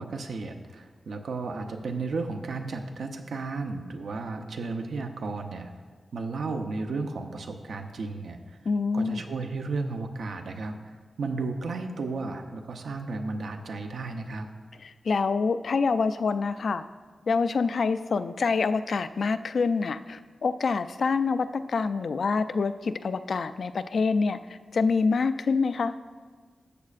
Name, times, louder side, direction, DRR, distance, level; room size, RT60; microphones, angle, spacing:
voice 1, 0.0-5.7 6.1-8.6 8.9-14.5, right 3 dB, 85° right, 5 dB, 0.7 m, -34 dB
voice 2, 8.7-9.2 14.8-16.9 17.3-25.9, left 4 dB, 60° left, 11 dB, 0.3 m, -26 dB
13.5 x 8.3 x 2.5 m, 1.5 s
wide cardioid pair, 155°, 0 cm